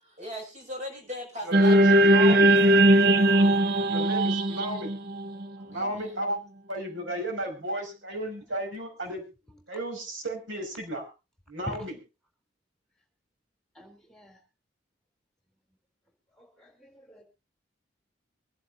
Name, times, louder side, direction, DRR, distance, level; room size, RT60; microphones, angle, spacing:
voice 1, 0.2-1.8 2.2-3.6 5.5-6.3, equal, 40° right, 3 dB, 5.9 m, -40 dB
voice 2, 1.4-2.5 3.9-4.9 5.7-6.4 6.7-9.2 9.7-11.1 11.5-11.9, right 1 dB, 80° right, 2 dB, 5.5 m, -34 dB
sound 1, 1.5-5.9, right 1 dB, 55° right, 0.9 m, -20 dB
voice 3, 5.4-6.1 8.4-8.6 9.5-9.6 11.6-11.9 13.7-14.4 16.3-17.2, left 1 dB, 5° left, 5 dB, 3.4 m, -46 dB
24.0 x 11.0 x 2.6 m, 0.29 s
head